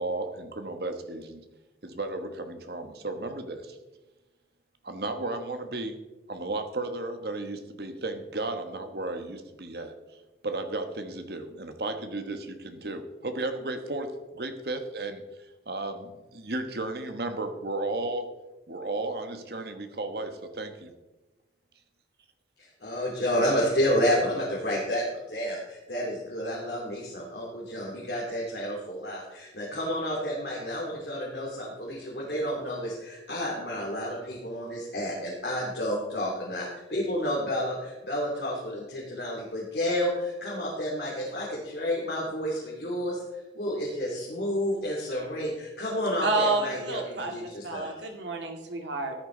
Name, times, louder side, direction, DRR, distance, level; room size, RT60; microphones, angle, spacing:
voice 1, 0.0-1.4 1.8-3.8 4.8-6.0 6.3-9.9 10.4-15.2 15.7-18.3 18.7-20.9, right 2 dB, 60° right, 7 dB, 1.3 m, -34 dB
voice 2, 22.8-43.2 43.5-48.1, equal, 65° left, -5 dB, 2.9 m, -30 dB
voice 3, 46.2-49.1, right 2 dB, 85° right, 3 dB, 2.1 m, -30 dB
14.0 x 10.5 x 3.9 m, 1.1 s
head